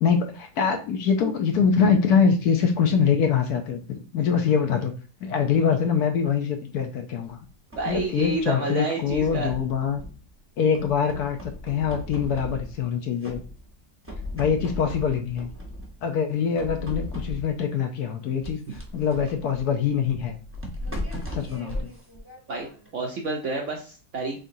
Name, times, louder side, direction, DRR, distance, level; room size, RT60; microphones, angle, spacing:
voice 1, 0.0-4.9 5.2-7.4 7.9-10.0 10.6-13.4 14.3-15.5 16.0-18.6 18.9-20.4 21.3-21.9, left 6 dB, 70° left, 5 dB, 1.0 m, -24 dB
sound 1, 7.2-8.5 9.0-10.3 10.7-12.9 13.2-13.8 14.0-16.0 16.6-17.7 18.4-22.9, left 1 dB, 10° right, 0.7 m, -37 dB
voice 2, 7.8-9.5 22.5-24.4, right 2 dB, 60° right, 0 dB, 0.8 m, -29 dB
3.8 x 3.6 x 2.6 m, 0.36 s
omnidirectional pair, 1.9 m